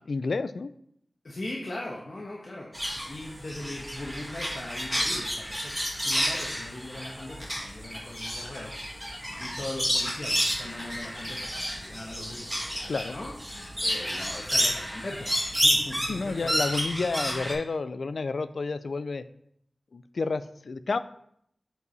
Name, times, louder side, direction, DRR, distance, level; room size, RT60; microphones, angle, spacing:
voice 1, 0.1-0.7 12.9-13.1 16.1-19.3 19.9-21.0, left 4 dB, 80° left, 13 dB, 0.4 m, -30 dB
voice 2, 1.2-8.7 9.1-16.5, left 1 dB, 60° left, -3 dB, 1.2 m, -40 dB
sound 1, 2.7-17.5, equal, 5° right, 2.1 m, -30 dB
8.1 x 4.7 x 4.1 m, 0.71 s
wide cardioid pair, 65°, 0 cm